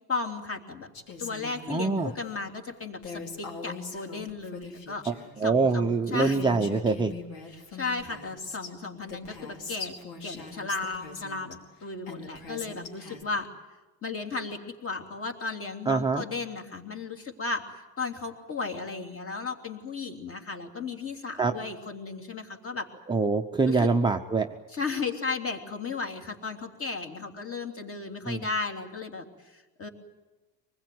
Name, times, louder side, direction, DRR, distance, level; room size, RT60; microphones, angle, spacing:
voice 1, 0.1-0.9 1.2-5.0 5.4-6.5 7.5-9.9 10.2-13.5 14.0-22.9 23.7-23.9 24.7-29.9, left 4 dB, 30° left, 3 dB, 3.1 m, -35 dB
Female speech woman speaking, 0.9-2.2 3.0-5.3 5.9-6.0 6.2-8.7 9.1-11.5 12.1-13.2, left 4 dB, 70° left, 5.0 m, -41 dB
voice 2, 1.7-2.1 5.1-7.1 15.9-16.2 21.4-21.5 23.1-24.5 28.3-28.5, right 4 dB, 10° right, 3 dB, 0.8 m, -25 dB
25.0 x 20.5 x 9.5 m, 1.2 s
cardioid pair, 145°, 45 cm